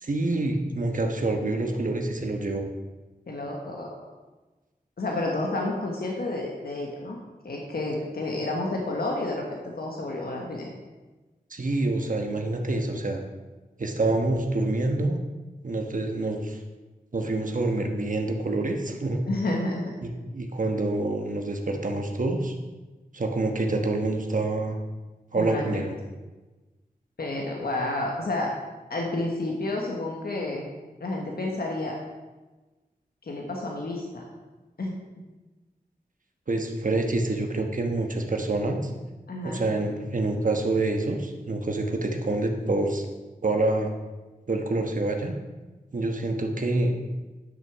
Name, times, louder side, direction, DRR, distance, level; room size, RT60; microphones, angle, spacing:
voice 1, 0.0-2.7 11.5-13.2 13.8-15.2 15.6-16.6 17.1-19.2 20.0-22.5 23.1-24.8 25.3-26.0 36.5-38.9 39.4-43.0 43.4-43.9 44.5-45.3 45.9-46.9, right 2 dB, 60° right, 3 dB, 1.2 m, -27 dB
voice 2, 3.3-3.9 5.0-7.2 7.4-10.7 19.3-19.9 25.4-25.8 27.2-28.5 28.9-30.7 31.0-32.0 33.2-34.3 34.8-35.0 39.3-39.6, left 2 dB, 85° left, -1 dB, 1.3 m, -30 dB
10.5 x 6.5 x 4.7 m, 1.2 s
wide cardioid pair, 65°, 15 cm